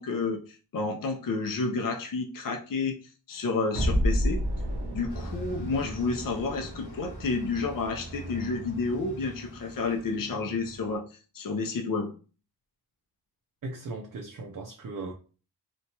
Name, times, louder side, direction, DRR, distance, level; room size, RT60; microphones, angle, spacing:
voice 1, 0.0-3.0 3.3-4.4 4.9-11.1 11.3-12.1, left 3 dB, 55° left, 0.5 m, -30 dB
sound 1, 3.7-8.8, equal, 80° right, 0.9 m, -31 dB
Bus, 5.1-11.0, right 1 dB, 80° left, 1.0 m, -43 dB
voice 2, 13.6-15.1, right 3 dB, 55° right, 0.5 m, -37 dB
2.9 x 2.2 x 2.8 m
cardioid pair, 40°, 41 cm